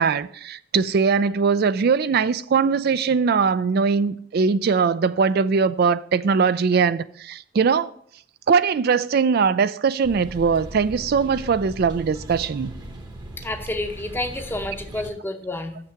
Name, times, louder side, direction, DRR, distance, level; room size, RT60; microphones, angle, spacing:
voice 1, 0.0-7.9 8.5-12.7, right 5 dB, 55° right, 0.3 m, -21 dB
sound 1, 10.0-15.1, right 1 dB, 20° right, 0.9 m, -38 dB
voice 2, 13.4-15.8, left 2 dB, 10° left, 0.7 m, -29 dB
6.9 x 5.8 x 5.8 m
head